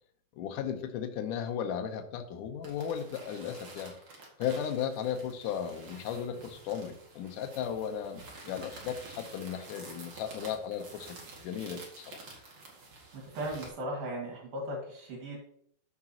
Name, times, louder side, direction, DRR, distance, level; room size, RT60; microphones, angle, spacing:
voice 1, 0.3-3.9 4.4-12.2, left 8 dB, 70° left, 6 dB, 2.2 m, -36 dB
sound 1, 2.6-13.7, right 3 dB, 45° right, 2.4 m, -49 dB
voice 2, 13.4-15.4, right 1 dB, 70° right, -2 dB, 3.8 m, -37 dB
14.0 x 5.9 x 3.0 m, 0.64 s
omnidirectional pair, 4.3 m